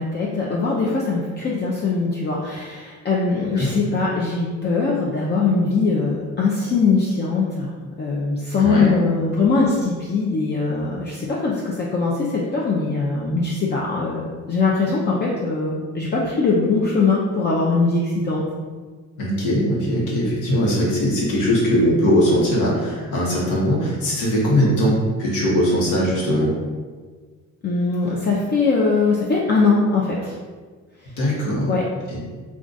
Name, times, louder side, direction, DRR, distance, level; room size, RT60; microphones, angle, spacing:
voice 1, 0.0-7.7 8.0-18.4 27.6-30.4 31.6-31.8, left 4 dB, 35° left, -5 dB, 0.5 m, -21 dB
voice 2, 8.6-8.9 19.2-26.5 31.2-31.7 32.1-32.2, equal, 85° left, -5 dB, 1.0 m, -20 dB
2.4 x 2.3 x 3.9 m, 1.5 s
cardioid pair, 90°, 30 cm